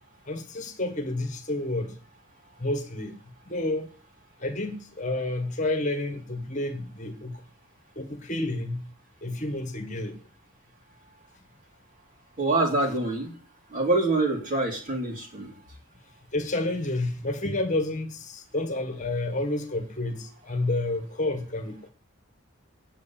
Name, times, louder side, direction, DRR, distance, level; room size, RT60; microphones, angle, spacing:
voice 1, 0.2-2.0 2.6-3.9 4.4-7.4 7.9-8.9 9.2-10.2 16.3-21.9, left 2 dB, 35° left, 1.7 m, -30 dB
voice 2, 12.4-13.3 13.7-15.5, right 2 dB, 40° right, 3.6 m, -25 dB
9.6 x 8.0 x 7.3 m
head